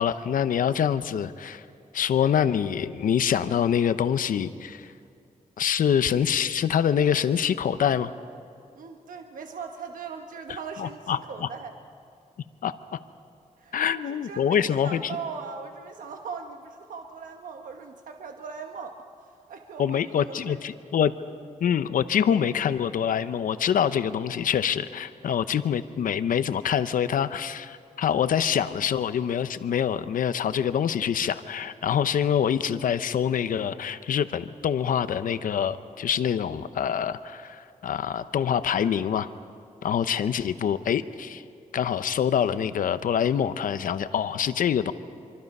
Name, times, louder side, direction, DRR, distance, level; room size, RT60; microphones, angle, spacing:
voice 1, 0.0-1.6 1.9-4.9 5.6-8.1 10.5-11.5 12.6-13.0 13.7-15.2 19.8-21.1 21.6-39.3 39.8-41.4 41.7-44.9, left 8 dB, 90° left, 13 dB, 0.8 m, -25 dB
voice 2, 8.7-11.7 13.6-13.8 14.2-19.0 19.5-20.6, right 5 dB, 80° right, 4 dB, 1.2 m, -39 dB
25.5 x 24.5 x 5.5 m, 2.4 s
wide cardioid pair, 155°, 14 cm